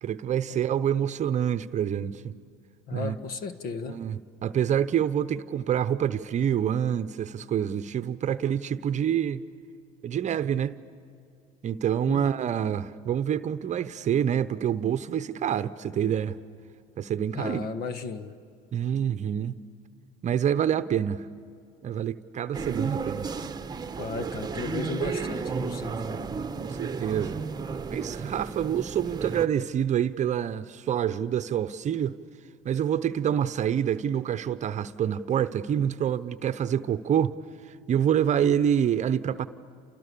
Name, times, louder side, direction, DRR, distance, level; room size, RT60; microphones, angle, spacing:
voice 1, 0.0-2.3 2.9-3.2 3.9-9.4 10.0-10.8 11.6-16.3 17.0-17.7 18.7-19.5 20.2-21.2 21.8-23.3 26.6-27.4 27.9-32.2 32.6-37.4 37.9-39.5, right 9 dB, 40° right, 0.9 m, -27 dB
voice 2, 2.9-4.0 12.1-12.2 17.3-18.3 24.0-26.0, left 5 dB, 55° left, 1.5 m, -35 dB
sound 1, 22.5-29.5, right 5 dB, 20° right, 1.1 m, -33 dB
29.5 x 29.0 x 6.9 m
supercardioid pair, 85°, 18 cm